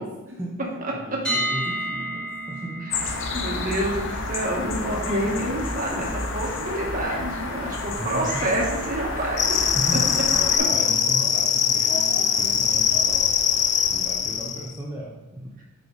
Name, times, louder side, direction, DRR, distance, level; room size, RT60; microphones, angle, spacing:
voice 1, 0.0-2.9 7.9-8.5 9.7-13.4 13.9-15.6, right 1 dB, 10° right, -4 dB, 0.8 m, -35 dB
sound 1, 1.2-13.2, right 1 dB, 5° left, 2.1 m, -36 dB
sound 2, 2.9-10.6, left 3 dB, 65° left, 0.9 m, -30 dB
voice 2, 3.3-9.7, right 1 dB, 40° right, -2 dB, 1.6 m, -28 dB
sound 3, 9.4-14.7, left 8 dB, 35° left, 0.4 m, -22 dB
8.8 x 4.9 x 4.1 m, 1.0 s
head